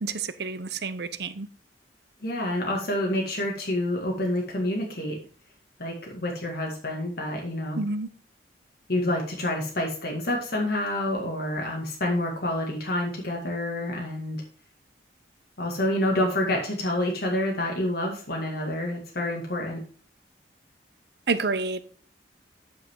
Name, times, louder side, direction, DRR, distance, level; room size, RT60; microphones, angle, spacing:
voice 1, 0.0-1.5 7.8-8.1 21.3-21.8, right 4 dB, 65° right, 0.7 m, -29 dB
voice 2, 2.2-5.2 5.8-7.8 8.9-14.4 15.6-19.8, left 1 dB, 60° left, 2.0 m, -28 dB
9.0 x 5.6 x 4.6 m
head